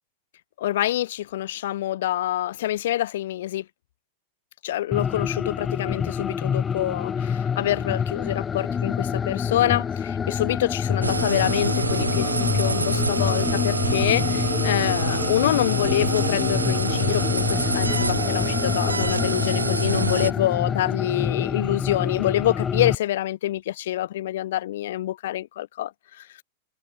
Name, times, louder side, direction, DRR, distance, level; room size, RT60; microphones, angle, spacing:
voice 1, 0.6-3.6 4.6-25.9 26.2-26.3, left 13 dB, 60° left, 5.7 m, -26 dB
sound 1, 4.9-23.0, left 7 dB, 20° left, 7.5 m, -27 dB
sound 2, 11.0-20.3, right 3 dB, 85° right, 5.1 m, -26 dB
figure-of-eight pair, 95°, 0 cm